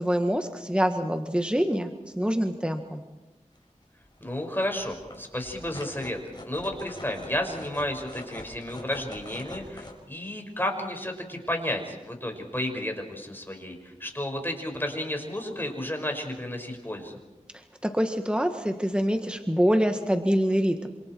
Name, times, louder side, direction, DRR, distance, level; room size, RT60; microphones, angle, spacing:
voice 1, 0.0-3.0 17.5-20.9, equal, 10° right, 6 dB, 1.6 m, -25 dB
sound 1, 3.6-3.7 4.1-4.3 4.5-9.9, left 1 dB, 35° left, 5.6 m, -43 dB
voice 2, 4.2-6.2 6.4-17.1, left 1 dB, 15° left, 3 dB, 5.5 m, -32 dB
27.0 x 27.0 x 4.6 m, 1.1 s
wide cardioid pair, 50°, 13 cm